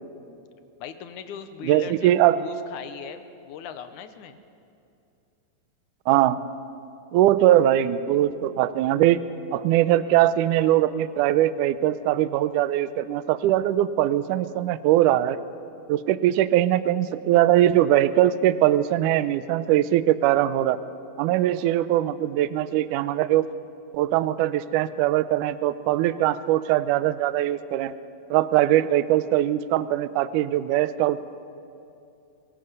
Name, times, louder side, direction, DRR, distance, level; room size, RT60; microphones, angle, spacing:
voice 1, 0.8-4.4, left 8 dB, 70° left, 9 dB, 2.2 m, -39 dB
voice 2, 1.6-2.4 6.1-6.4 7.1-9.2 9.5-15.4 15.9-20.8 21.2-23.5 23.9-27.9 28.3-31.2, right 13 dB, 75° right, 14 dB, 2.0 m, -21 dB
25.0 x 17.0 x 8.1 m, 2.6 s
omnidirectional pair, 4.2 m